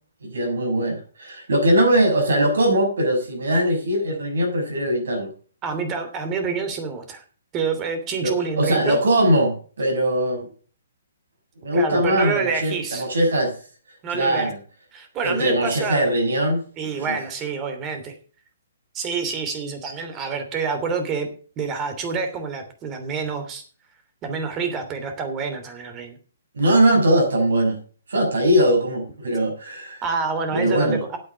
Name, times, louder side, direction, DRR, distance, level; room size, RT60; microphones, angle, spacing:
voice 1, 0.2-5.3 8.2-10.5 11.6-13.5 14.1-14.6 15.2-16.6 16.9-17.1 26.5-27.8 28.1-30.0 30.5-31.0, right 1 dB, 75° right, 2 dB, 6.1 m, -21 dB
voice 2, 5.6-7.2 7.5-9.0 11.7-13.1 14.0-14.5 14.9-16.1 16.8-18.1 18.9-21.3 21.6-23.6 24.2-26.2 30.0-31.2, right 5 dB, 25° right, 7 dB, 3.0 m, -27 dB
9.3 x 8.2 x 6.9 m, 0.41 s
hypercardioid pair, 135°, 0 cm